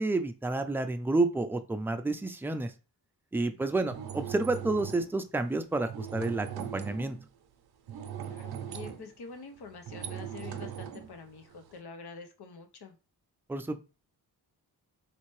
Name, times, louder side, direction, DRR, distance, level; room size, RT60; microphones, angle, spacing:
voice 1, 0.0-2.7 3.3-7.2 13.5-13.8, right 2 dB, 5° right, 8 dB, 0.4 m, -30 dB
voice 2, 3.4-3.7 8.2-13.0, left 4 dB, 75° left, 6 dB, 0.8 m, -47 dB
sound 1, 3.8-5.1 5.9-7.2 7.9-11.8, right 9 dB, 70° right, 0.6 m, -40 dB
3.3 x 2.7 x 3.1 m, 0.33 s
cardioid pair, 70°, 40 cm